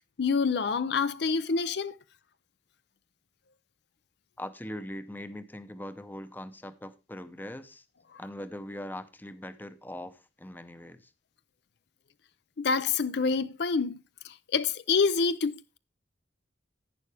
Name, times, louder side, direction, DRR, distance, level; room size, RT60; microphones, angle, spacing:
voice 1, 0.0-1.9 12.6-14.0 14.2-15.8, left 5 dB, 60° left, 0.5 m, -27 dB
voice 2, 4.4-7.8 8.2-11.1, left 1 dB, 10° left, 0.7 m, -41 dB
11.0 x 9.6 x 3.3 m
head